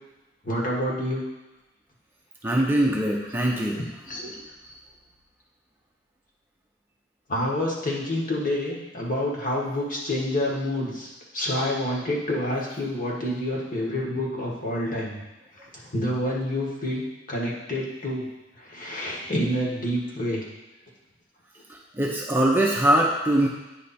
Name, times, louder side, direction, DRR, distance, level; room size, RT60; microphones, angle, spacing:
voice 1, 0.4-1.2 3.7-4.3 7.3-15.2 15.9-18.2 18.6-20.4, left 1 dB, 45° left, -3 dB, 1.6 m, -28 dB
voice 2, 2.4-3.8 4.1-4.2 22.0-23.5, right 1 dB, 10° right, -2 dB, 0.6 m, -22 dB
9.5 x 3.3 x 4.2 m, 1.1 s
head